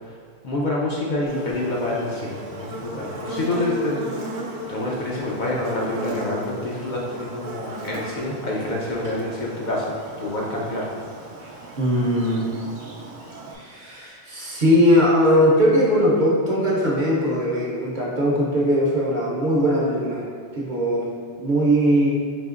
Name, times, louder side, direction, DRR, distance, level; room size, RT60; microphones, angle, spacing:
voice 1, 0.4-4.4 4.7-10.9 11.4-11.6, left 1 dB, 55° left, -5 dB, 0.6 m, -27 dB
Buzz, 1.3-13.5, right 1 dB, 85° right, 0.9 m, -36 dB
voice 2, 11.8-12.4 13.5-20.2 20.5-21.1 21.4-22.1, equal, 50° right, -5 dB, 0.7 m, -20 dB
5.0 x 2.7 x 2.4 m, 2.1 s
omnidirectional pair, 1.1 m